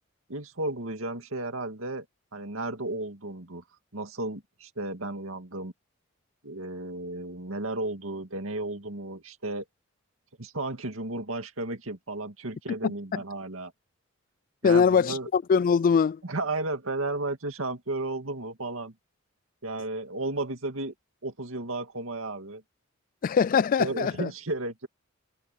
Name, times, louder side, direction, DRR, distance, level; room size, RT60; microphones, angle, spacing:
voice 1, 0.3-2.1 2.3-3.6 3.9-5.7 6.4-9.7 10.4-13.7 14.6-15.3 16.2-18.9 19.6-20.9 21.2-22.6 23.8-24.9, right 2 dB, 75° right, 2.2 m, -33 dB
voice 2, 14.6-16.2 23.2-24.3, left 6 dB, 40° left, 0.3 m, -22 dB
head